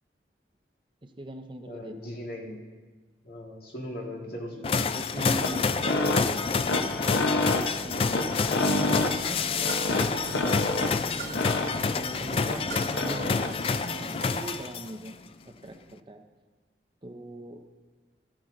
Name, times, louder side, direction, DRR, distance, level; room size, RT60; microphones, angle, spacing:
voice 1, 1.0-2.1 4.2-7.3 7.8-11.4 11.8-15.2 15.5-16.2 17.0-17.7, right 1 dB, 25° right, 5 dB, 0.7 m, -41 dB
voice 2, 1.7-2.5 3.2-4.8, left 1 dB, 55° left, -1 dB, 2.1 m, -39 dB
sound 1, 4.6-15.1, left 5 dB, 30° left, 0.3 m, -29 dB
sound 2, 5.1-13.6, left 2 dB, 80° left, 0.9 m, -29 dB
sound 3, 8.6-14.6, right 3 dB, 65° right, 2.3 m, -41 dB
15.0 x 10.0 x 3.9 m, 1.4 s
head